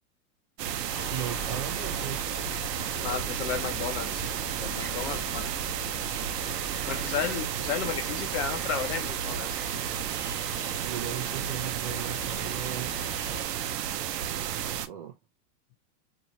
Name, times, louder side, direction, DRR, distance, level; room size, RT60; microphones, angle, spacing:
sound 1, 0.6-14.9, right 10 dB, 90° right, 0.7 m, -32 dB
sound 2, 0.9-13.4, left 3 dB, 25° left, 1.3 m, -42 dB
voice 1, 1.1-2.5 10.8-13.0 13.3-13.5 14.7-15.2, right 11 dB, 35° right, 0.5 m, -38 dB
voice 2, 3.0-4.2 4.6-5.5 6.8-9.5 14.5-14.6, left 7 dB, 45° left, 0.9 m, -33 dB
2.8 x 2.6 x 2.9 m
supercardioid pair, 165°, 47 cm